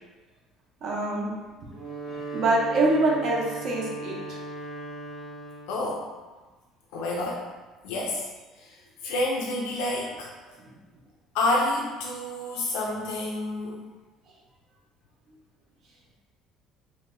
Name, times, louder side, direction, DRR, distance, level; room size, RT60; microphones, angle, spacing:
voice 1, 0.8-1.3 2.1-4.2, right 2 dB, 45° right, -2 dB, 0.6 m, -25 dB
Wind instrument woodwind instrument, 1.6-5.8, right 2 dB, 5° left, 0.7 m, -37 dB
voice 2, 5.7-6.1 6.9-7.5 7.8-8.3 8.6-10.3 11.3-13.9, left 2 dB, 90° left, -2 dB, 0.4 m, -29 dB
2.8 x 2.1 x 3.6 m, 1.2 s
cardioid pair, 165°, 0 cm